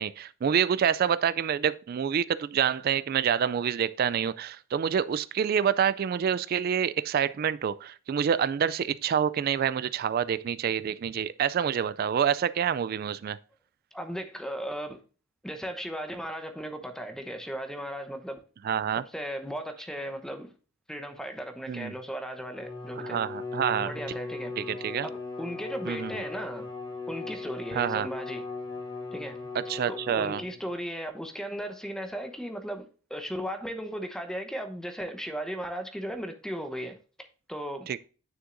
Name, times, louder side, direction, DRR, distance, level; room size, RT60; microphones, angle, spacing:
voice 1, 0.0-13.4 18.6-19.0 21.7-21.9 23.0-23.9 24.6-25.1 25.9-26.1 27.7-28.1 29.5-30.4 37.9-38.1, right 8 dB, 45° right, 0.3 m, -27 dB
voice 2, 13.9-15.0 15.4-18.4 19.1-20.5 20.9-23.2 23.8-24.5 25.0-26.6 27.1-28.4 29.1-29.4 29.9-37.9, equal, 5° left, 0.8 m, -36 dB
Bowed string instrument, 22.4-30.7, left 3 dB, 25° left, 3.4 m, -38 dB
9.7 x 6.3 x 2.6 m
head